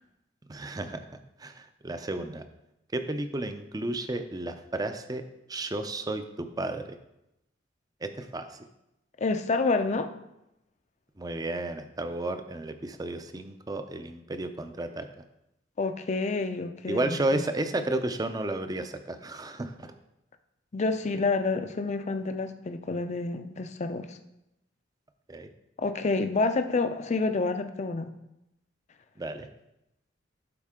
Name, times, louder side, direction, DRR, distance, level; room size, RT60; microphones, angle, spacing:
voice 1, 0.5-1.1 1.4-2.4 2.9-5.2 5.5-7.0 8.0-8.6 11.2-15.1 16.9-19.9 25.3-25.5 29.2-29.5, right 2 dB, 20° right, 8 dB, 0.5 m, -32 dB
voice 2, 9.2-10.1 15.8-17.4 20.7-24.2 25.8-28.1, left 3 dB, 35° left, 8 dB, 0.5 m, -28 dB
11.5 x 4.3 x 3.7 m, 0.87 s
head